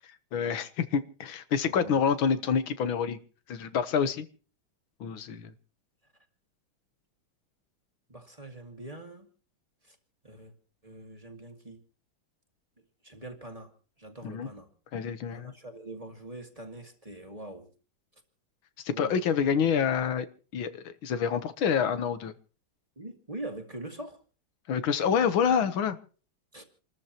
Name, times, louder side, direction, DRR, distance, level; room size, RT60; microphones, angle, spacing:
voice 1, 0.3-3.2 3.5-4.3 5.0-5.5 14.2-14.5 14.9-15.5 18.9-20.3 20.5-22.3 24.7-26.0, left 7 dB, 80° left, 12 dB, 1.8 m, -27 dB
voice 2, 1.7-2.0 8.1-9.3 9.9-10.0 10.2-10.5 10.8-11.8 13.0-13.7 14.0-14.7 15.3-17.7 18.9-19.2 23.0-24.2 26.5-26.6, right 1 dB, 20° right, 4 dB, 1.8 m, -43 dB
28.5 x 13.5 x 2.9 m, 0.38 s
omnidirectional pair, 2.2 m